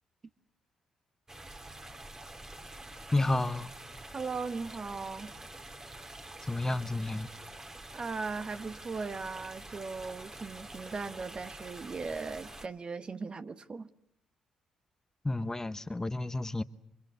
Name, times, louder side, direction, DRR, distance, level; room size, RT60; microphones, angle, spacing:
sound 1, 1.3-12.7, right 2 dB, 20° right, 2.5 m, -47 dB
voice 1, 3.1-3.7 6.4-7.3 15.2-16.6, left 2 dB, 20° left, 1.1 m, -31 dB
voice 2, 4.1-5.3 7.9-13.9, right 4 dB, 40° right, 1.4 m, -38 dB
29.0 x 24.5 x 8.2 m
supercardioid pair, 55°, 3 cm